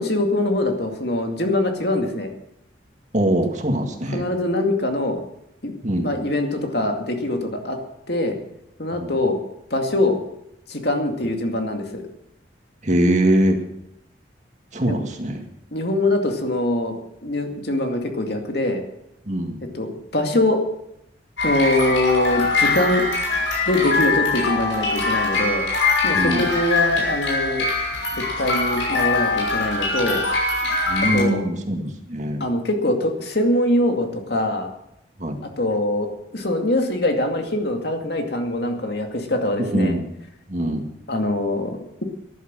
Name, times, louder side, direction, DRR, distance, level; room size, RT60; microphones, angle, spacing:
voice 1, 0.0-2.3 4.1-5.2 5.6-5.7 6.0-7.8 8.1-8.4 8.8-9.4 9.7-10.2 10.7-12.0 14.9-15.0 15.7-17.0 17.2-18.8 19.7-20.6 21.4-23.1 23.7-25.7 26.0-27.7 28.4-30.2 31.1-31.4 32.4-34.7 35.4-40.0 41.1-42.0, left 1 dB, 55° left, 4 dB, 2.3 m, -23 dB
voice 2, 3.1-4.3 5.8-6.1 8.9-9.1 12.8-13.6 14.7-15.4 19.3-19.6 26.1-26.5 30.9-32.4 35.2-35.4 39.6-40.1 40.5-40.9, right 1 dB, 40° right, 4 dB, 2.0 m, -22 dB
sound 1, 21.4-31.2, left 3 dB, 90° left, 6.3 m, -22 dB
14.0 x 11.5 x 7.4 m, 0.82 s
head